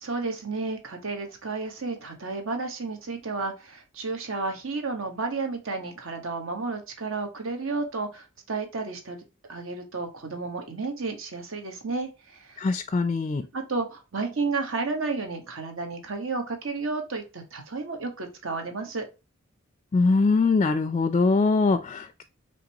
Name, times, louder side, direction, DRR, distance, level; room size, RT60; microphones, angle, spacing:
voice 1, 0.0-9.2 9.5-12.7 13.5-19.1, right 3 dB, 75° right, 1.2 m, -32 dB
voice 2, 12.6-13.5 19.9-22.2, left 3 dB, 30° left, 0.3 m, -22 dB
5.1 x 3.2 x 2.8 m
head